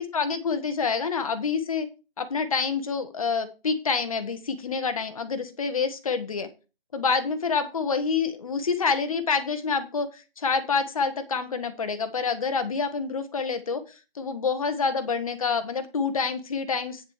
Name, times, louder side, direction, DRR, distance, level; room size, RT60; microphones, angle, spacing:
voice 1, 0.0-1.9 2.2-6.5 6.9-13.8 14.1-17.0, left 5 dB, 35° left, 9 dB, 1.3 m, -27 dB
9.2 x 7.5 x 4.8 m, 0.31 s
figure-of-eight pair, 155°, 30 cm